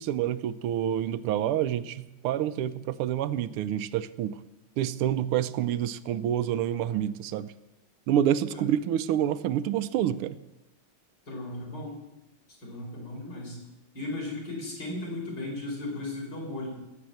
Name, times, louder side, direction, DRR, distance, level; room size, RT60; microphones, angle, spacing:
voice 1, 0.0-4.4 4.8-7.5 8.1-10.4, right 10 dB, 85° right, 14 dB, 1.6 m, -28 dB
voice 2, 11.3-12.0 12.6-13.6 13.9-16.7, left 2 dB, 50° left, -2 dB, 4.9 m, -36 dB
17.5 x 7.2 x 7.6 m, 0.96 s
omnidirectional pair, 2.4 m